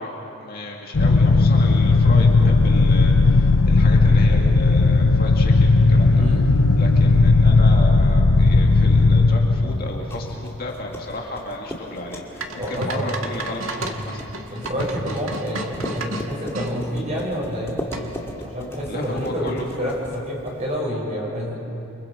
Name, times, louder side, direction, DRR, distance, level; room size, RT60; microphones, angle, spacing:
voice 1, 0.0-6.3 6.8-14.2 18.9-19.7, left 1 dB, 45° left, -1 dB, 2.3 m, -33 dB
sound 1, 0.9-10.6, left 3 dB, 80° left, 0.7 m, -16 dB
voice 2, 6.1-6.5 12.6-13.1 14.5-17.8 18.4-21.5, equal, 30° right, -4 dB, 7.0 m, -28 dB
sound 2, 9.8-20.8, equal, 10° left, 2.2 m, -38 dB
sound 3, 12.4-16.7 17.9-18.3, right 1 dB, 70° right, 1.8 m, -31 dB
29.5 x 24.5 x 5.3 m, 2.8 s
head